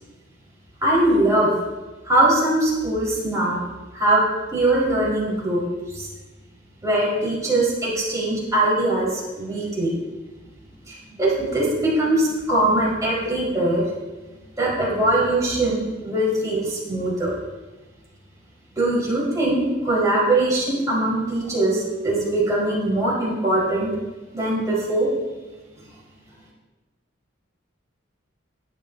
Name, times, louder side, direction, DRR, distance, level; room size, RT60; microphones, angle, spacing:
voice 1, 0.8-1.5 2.0-3.6 3.9-4.2 4.5-5.6 5.9-6.1 6.8-9.9 10.9-13.8 14.6-17.3 18.8-23.9 24.3-25.1, right 1 dB, 15° right, -6 dB, 5.1 m, -21 dB
21.5 x 10.5 x 2.9 m, 1.2 s
head